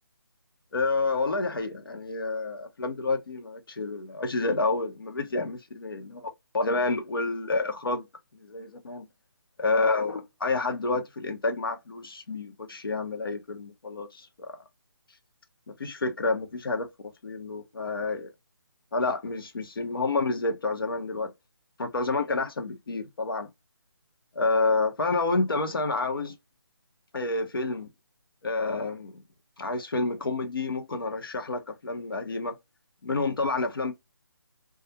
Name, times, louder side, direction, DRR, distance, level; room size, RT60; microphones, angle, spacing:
voice 1, 0.7-8.1 8.4-9.0 9.6-14.5 15.7-16.9 17.2-18.3 18.9-21.3 21.8-23.5 24.3-26.4 27.1-27.9 28.4-29.2 29.6-32.5 33.0-33.9, left 3 dB, 65° left, 0.8 m, -29 dB
2.4 x 2.4 x 2.7 m
figure-of-eight pair, 155°, 13 cm